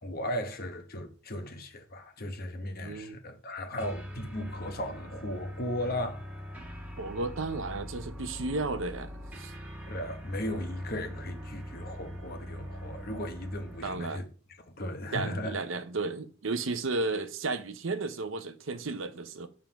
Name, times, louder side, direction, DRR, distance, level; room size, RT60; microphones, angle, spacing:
voice 1, 0.0-6.2 6.6-6.7 9.9-14.3 14.8-15.6, left 1 dB, 45° left, 1.0 m, -36 dB
voice 2, 2.8-3.2 7.0-9.5 13.8-14.2 15.1-19.5, right 3 dB, 65° right, 0.7 m, -33 dB
sound 1, 3.8-14.1, equal, 10° right, 1.2 m, -42 dB
7.1 x 3.7 x 5.7 m
head